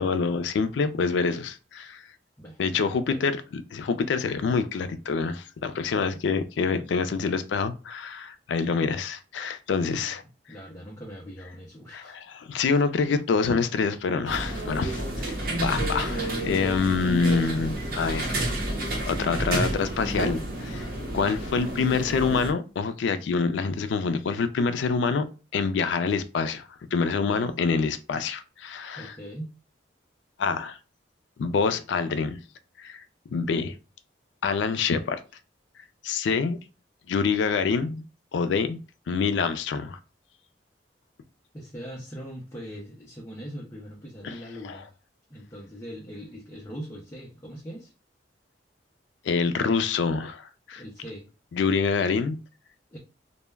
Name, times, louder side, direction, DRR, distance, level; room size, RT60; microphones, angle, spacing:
voice 1, 0.0-2.0 2.6-10.2 11.9-18.4 19.1-20.9 21.1-25.3 25.5-29.2 30.4-30.8 31.4-32.4 32.8-33.0 33.3-33.7 34.4-35.2 36.0-36.6 37.1-38.0 38.3-40.0 44.2-44.3 44.6-44.8 49.2-50.8 51.5-52.4, left 5 dB, 75° left, 0.3 m, -26 dB
voice 2, 2.4-3.2 6.1-6.2 9.8-10.2 10.5-12.2 29.0-29.5 41.5-44.9 45.3-47.9 50.7-51.3 52.9-53.0, equal, 15° left, 0.5 m, -41 dB
sound 1, 14.3-22.5, right 1 dB, 55° right, 0.7 m, -30 dB
2.2 x 2.0 x 3.3 m
head